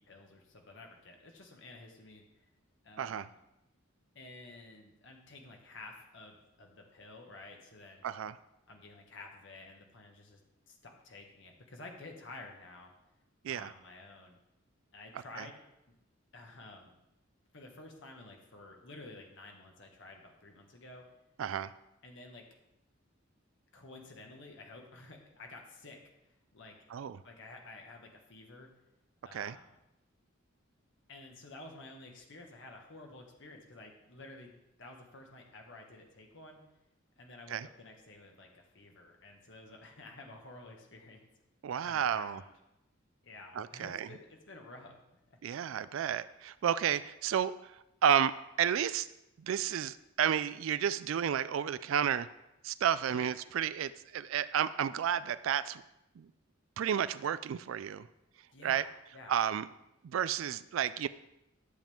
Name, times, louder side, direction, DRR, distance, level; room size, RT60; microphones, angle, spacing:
voice 1, 0.0-2.3 2.8-3.4 4.1-8.0 8.7-10.4 10.7-12.9 13.5-14.4 14.9-15.6 16.3-16.9 17.5-21.0 22.0-22.5 23.7-26.0 26.5-26.8 27.2-28.7 29.2-29.7 31.1-34.5 34.8-36.6 37.2-41.2 41.8-42.5 43.2-44.9 53.1-53.3 58.5-59.3, left 2 dB, 60° left, 2 dB, 1.5 m, -51 dB
voice 2, 3.0-3.3 8.0-8.3 13.4-13.7 15.4-15.5 21.4-21.7 26.9-27.2 29.3-29.6 37.5-37.7 41.6-42.4 43.5-44.1 45.4-47.7 48.0-48.3 48.6-49.1 49.4-52.3 52.6-55.8 56.2-56.3 56.8-58.1 58.6-58.9 59.3-59.7 60.0-61.1, right 9 dB, 70° right, 15 dB, 0.3 m, -31 dB
11.5 x 7.4 x 3.5 m, 0.88 s
head